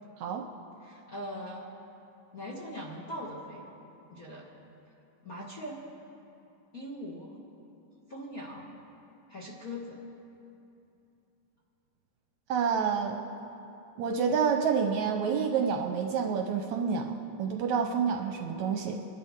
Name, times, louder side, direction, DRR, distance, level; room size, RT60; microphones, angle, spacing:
voice 1, 0.8-1.7 2.3-3.6 4.1-4.4 5.2-5.8 6.7-7.4 8.1-8.7 9.3-10.0, equal, 40° left, -4 dB, 1.2 m, -40 dB
voice 2, 12.5-13.2 14.0-17.1 17.4-19.0, right 6 dB, 75° right, 4 dB, 1.9 m, -28 dB
27.0 x 11.5 x 3.6 m, 2.8 s
omnidirectional pair, 3.8 m